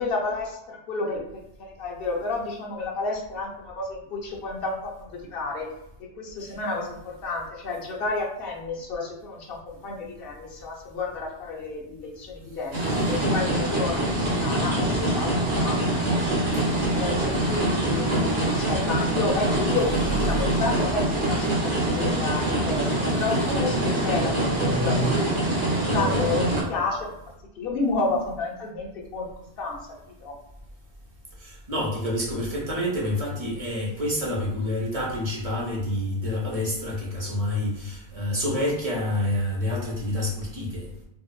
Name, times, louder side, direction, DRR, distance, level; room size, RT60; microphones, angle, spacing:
voice 1, 0.0-5.7 6.0-14.0 14.3-16.0 16.9-24.3 24.7-25.3 25.8-27.1 27.6-29.3 29.6-29.8 30.2-30.4, left 3 dB, 65° left, -2 dB, 0.8 m, -31 dB
sound 1, 12.7-26.6, right 1 dB, 75° right, 1.2 m, -24 dB
voice 2, 31.4-40.9, left 1 dB, 40° right, -3 dB, 0.6 m, -28 dB
2.8 x 2.1 x 2.3 m, 0.81 s
omnidirectional pair, 1.1 m